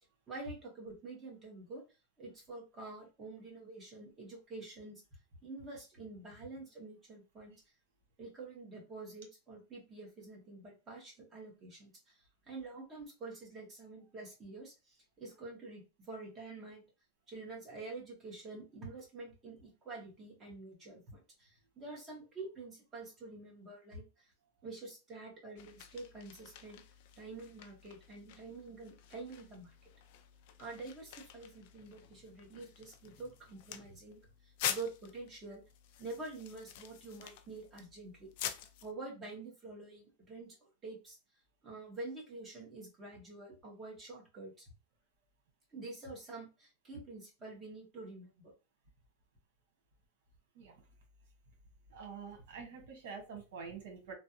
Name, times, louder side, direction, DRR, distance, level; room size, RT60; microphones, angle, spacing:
voice 1, 0.3-1.8 2.2-5.0 5.4-7.5 8.2-16.8 17.3-24.3 24.6-26.8 27.2-29.7 30.6-35.6 36.0-38.3 38.8-40.6 40.8-41.2 41.6-44.7 45.7-48.5, right 3 dB, 20° right, -3 dB, 1.4 m, -47 dB
sound 1, 25.6-38.9, left 10 dB, 55° left, 0.4 m, -46 dB
voice 2, 51.9-54.1, right 5 dB, 70° right, 3 dB, 1.5 m, -46 dB
3.3 x 2.3 x 2.8 m, 0.29 s
supercardioid pair, 155°, 0 cm